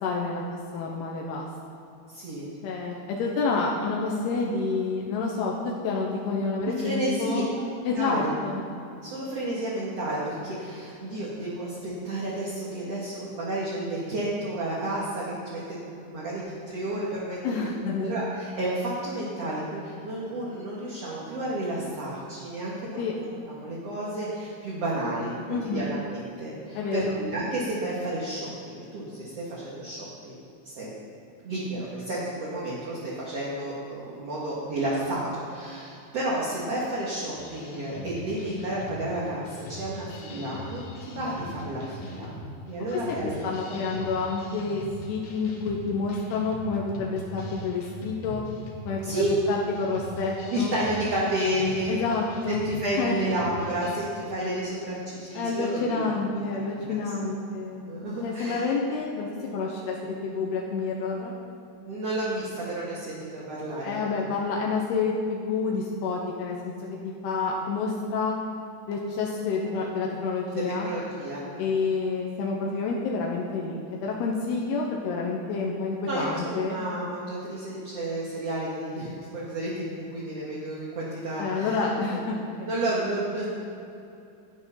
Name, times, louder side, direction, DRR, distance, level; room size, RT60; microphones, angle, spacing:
voice 1, 0.0-1.5 2.6-7.5 7.9-8.6 17.4-18.1 23.0-23.1 25.5-25.9 26.8-27.2 42.9-48.4 48.9-50.8 51.9-52.6 53.0-53.2 55.3-57.9 58.2-61.3 63.8-66.7 67.0-68.4 68.9-70.9 71.6-76.8 81.4-82.7, left 4 dB, 80° left, -2 dB, 3.0 m, -29 dB
voice 2, 2.1-2.5 6.8-7.6 8.0-8.3 9.0-17.6 18.0-23.2 23.5-30.3 30.8-30.9 31.4-42.3 42.7-43.3 44.0-44.1 49.0-49.4 50.5-52.0 52.5-56.1 57.2-57.4 57.7-58.7 61.8-64.2 70.5-71.7 76.1-82.2 82.7-83.4, right 1 dB, 50° right, -6 dB, 2.2 m, -31 dB
sound 1, 37.4-54.0, left 2 dB, 65° left, 2.8 m, -41 dB
12.0 x 9.5 x 5.7 m, 2.7 s
omnidirectional pair, 4.7 m